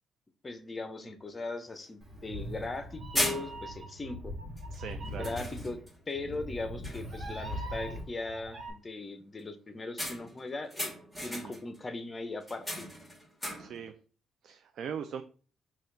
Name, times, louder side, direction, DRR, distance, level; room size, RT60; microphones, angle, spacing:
voice 1, 0.4-4.3 5.1-5.8 6.1-11.0 11.2-12.9, left 2 dB, 25° left, 0.6 m, -39 dB
sound 1, 1.3-1.4 1.8-1.9 2.6-2.8 3.1-3.9 4.6-4.8 5.2-6.0 6.4-6.6 6.8-7.3 10.0-11.8 12.4-13.9, equal, ahead, 1.5 m, -37 dB
Meow, 2.0-8.7, equal, 35° right, 1.7 m, -41 dB
voice 2, 4.7-5.3 11.3-11.5 13.6-13.9 14.4-15.2, right 7 dB, 70° right, 0.3 m, -40 dB
4.2 x 2.3 x 3.7 m
cardioid pair, 90°, 0 cm